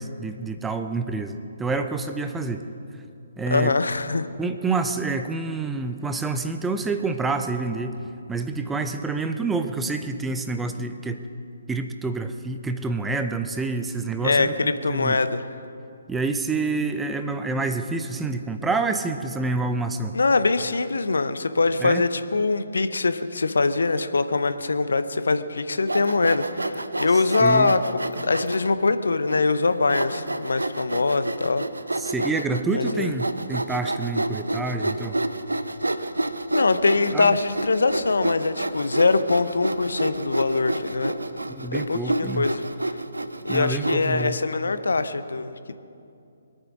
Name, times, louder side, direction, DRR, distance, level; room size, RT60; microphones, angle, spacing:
voice 1, 0.0-2.6 3.4-3.7 4.4-8.0 8.3-11.2 11.7-15.2 16.1-20.1 21.8-22.0 27.4-27.7 32.0-35.2 37.1-37.3 41.6-42.5 43.5-44.4, right 3 dB, 5° right, 7 dB, 0.7 m, -27 dB
voice 2, 3.5-4.3 14.2-15.5 20.1-31.7 32.7-33.1 36.5-41.1 41.7-42.6 42.9-43.0 43.4-45.5, left 3 dB, 65° left, 11 dB, 0.8 m, -23 dB
Sawing, 25.8-28.7 29.3-29.4 29.9-44.2, right 2 dB, 80° right, 0.8 m, -29 dB
23.0 x 9.1 x 6.1 m, 2.6 s
figure-of-eight pair, 135°, 0 cm